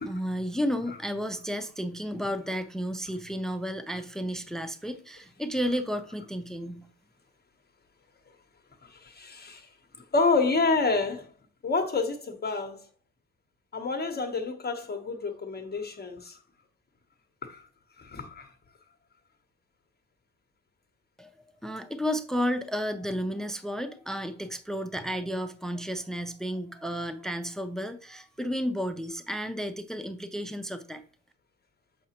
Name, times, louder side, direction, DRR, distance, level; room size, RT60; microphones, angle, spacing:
voice 1, 0.0-6.9 21.2-21.3 21.6-31.0, equal, ahead, 0.5 m, -32 dB
voice 2, 8.8-9.7 10.1-11.3 11.6-12.9 13.7-16.4 17.4-17.6 18.0-18.5, left 3 dB, 35° left, 0.9 m, -28 dB
6.4 x 5.8 x 2.9 m
cardioid pair, 90°, 30 cm